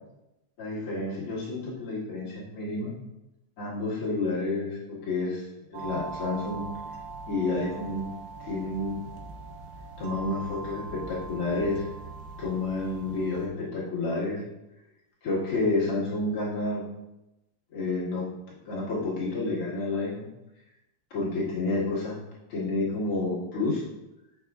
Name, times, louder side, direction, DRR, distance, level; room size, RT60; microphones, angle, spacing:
voice 1, 0.6-2.9 3.6-5.4 5.7-6.7 7.3-8.1 8.5-9.0 10.0-11.8 12.4-14.4 15.2-16.8 17.7-18.3 18.6-20.3 21.1-22.2 22.5-23.8, left 2 dB, 55° left, -7 dB, 1.5 m, -29 dB
sound 1, 5.7-13.5, right 4 dB, 80° right, 2.7 m, -41 dB
7.2 x 6.1 x 2.4 m, 0.95 s
omnidirectional pair, 4.9 m